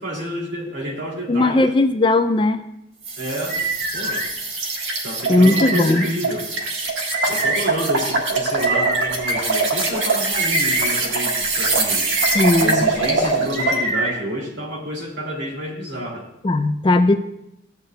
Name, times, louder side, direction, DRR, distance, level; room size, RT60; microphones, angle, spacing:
voice 1, 0.0-1.7 3.2-3.6 3.9-4.3 5.0-6.5 7.3-12.1 12.6-16.3, equal, 65° right, -2 dB, 2.6 m, -29 dB
voice 2, 1.3-2.6 5.3-6.0 12.3-12.8 16.4-17.1, left 2 dB, 25° left, 7 dB, 0.4 m, -17 dB
sound 1, 3.0-13.8, right 3 dB, 85° right, 1.5 m, -23 dB
sound 2, 3.5-4.3 5.4-6.1 7.1-7.6 8.6-9.4 10.3-10.9 11.9-12.5 13.5-14.1, right 1 dB, 50° right, 2.2 m, -24 dB
14.5 x 8.2 x 2.3 m, 0.82 s
head